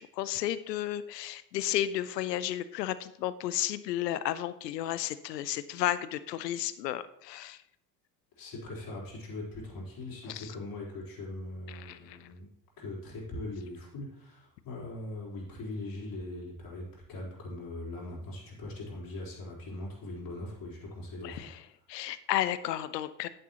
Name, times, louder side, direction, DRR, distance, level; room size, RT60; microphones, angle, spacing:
voice 1, 0.0-7.6 10.3-10.5 11.7-12.2 21.2-21.6 21.9-23.3, left 13 dB, 75° left, 15 dB, 0.7 m, -33 dB
voice 2, 8.4-12.5 12.8-21.5, left 2 dB, 45° left, -5 dB, 4.0 m, -41 dB
10.0 x 9.5 x 2.9 m, 0.75 s
figure-of-eight pair, 60°, 49 cm